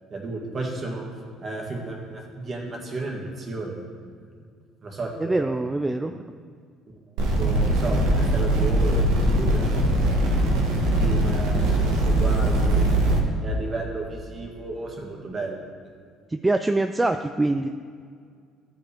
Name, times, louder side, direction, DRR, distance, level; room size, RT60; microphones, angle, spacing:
voice 1, 0.1-1.0 1.4-4.1 4.8-5.9 6.9-7.0 7.4-10.5 11.0-12.9 13.4-15.6, right 3 dB, 40° right, -1 dB, 2.0 m, -33 dB
voice 2, 5.2-6.3 16.3-17.7, right 2 dB, 15° right, 7 dB, 0.3 m, -24 dB
sound 1, 7.2-13.2, right 1 dB, 80° right, 1.2 m, -21 dB
13.0 x 4.9 x 3.5 m, 2.1 s
supercardioid pair, 70°, 0 cm